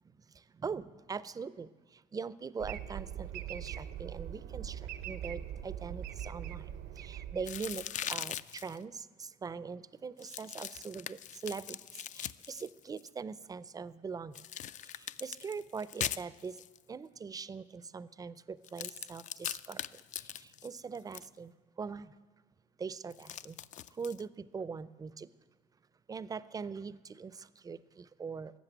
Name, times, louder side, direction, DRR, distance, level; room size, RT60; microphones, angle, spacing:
voice 1, 0.3-6.7 7.0-14.4 14.9-16.6 16.9-19.8 20.2-21.5 21.8-22.1 22.8-23.6 23.9-25.3 26.1-28.5, right 5 dB, 20° right, 17 dB, 0.4 m, -42 dB
sound 1, 2.6-8.0, right 10 dB, 80° right, 0.7 m, -42 dB
sound 2, 7.4-8.8 10.2-13.1 14.3-16.8 18.6-21.3 23.1-24.2, left 10 dB, 45° left, 0.4 m, -41 dB
13.5 x 7.3 x 9.3 m, 1.3 s
cardioid pair, 110°, 17 cm